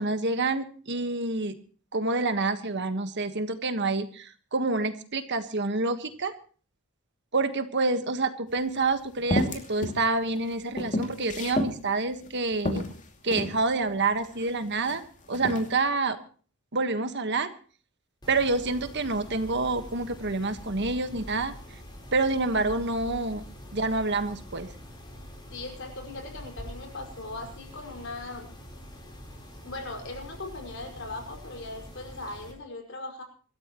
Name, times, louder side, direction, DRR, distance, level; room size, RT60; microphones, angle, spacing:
voice 1, 0.0-1.6 1.9-6.3 7.3-12.9 13.2-15.0 15.3-16.2 16.7-17.5 18.3-21.5 22.1-23.4 23.7-24.7, right 3 dB, 55° right, 9 dB, 1.5 m, -27 dB
sound 1, 8.5-8.6 9.3-10.0 10.4-11.8 12.2-12.3 12.7-13.6 14.3-15.0 15.3-15.7, left 1 dB, 35° left, 2.6 m, -30 dB
Mechanisms, 18.2-32.5, equal, 20° left, 4.2 m, -45 dB
voice 2, 25.5-28.5 29.6-33.2, left 2 dB, 55° left, 2 dB, 5.5 m, -39 dB
24.5 x 14.0 x 3.1 m, 0.41 s
head